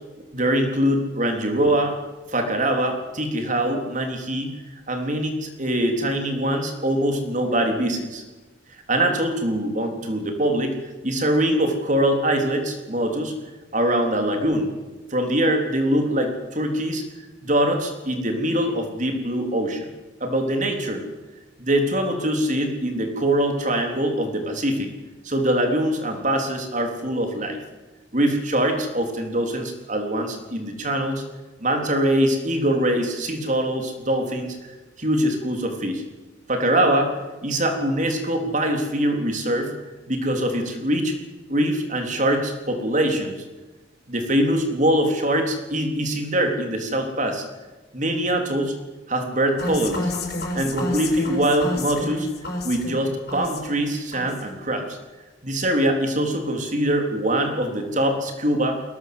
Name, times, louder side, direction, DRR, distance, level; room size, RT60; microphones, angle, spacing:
voice 1, 0.3-2.0 2.3-4.5 4.9-8.2 8.9-10.8 11.0-13.3 13.7-14.7 15.1-17.0 17.4-19.8 20.2-21.0 21.6-24.9 25.2-27.6 28.1-31.2 31.6-34.6 35.0-36.0 36.5-39.7 40.1-41.1 41.5-43.4 44.1-47.4 47.9-48.7 49.1-50.1 50.5-52.3 52.6-55.0 55.4-58.8, right 1 dB, 40° right, 4 dB, 3.8 m, -23 dB
sound 1, 49.6-53.9 54.1-54.6, left 2 dB, 55° left, 6.1 m, -30 dB
22.0 x 18.0 x 8.1 m, 1.2 s
head